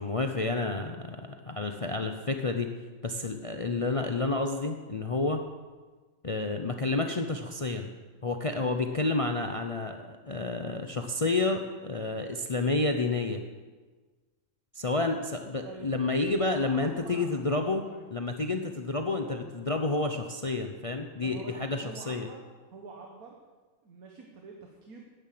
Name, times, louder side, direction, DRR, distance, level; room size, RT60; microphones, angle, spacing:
voice 1, 0.0-2.7 3.0-5.4 6.2-7.9 8.2-13.4 14.7-17.8 18.1-22.3, left 3 dB, 35° left, 5 dB, 0.5 m, -30 dB
voice 2, 16.4-18.0 19.1-19.5 21.2-22.4 22.7-23.4 23.8-25.0, right 4 dB, 85° right, 0 dB, 1.8 m, -46 dB
10.5 x 10.0 x 7.7 m, 1.4 s
omnidirectional pair, 1.5 m